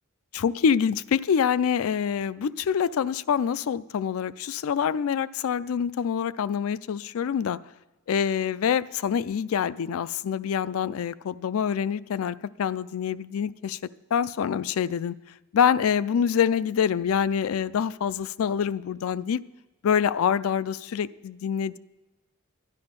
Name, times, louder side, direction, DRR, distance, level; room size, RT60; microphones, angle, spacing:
voice 1, 0.3-7.6 8.1-13.8 14.1-15.2 15.5-19.4 19.8-21.8, left 7 dB, 80° left, 17 dB, 0.4 m, -26 dB
12.5 x 10.5 x 5.2 m, 1.1 s
head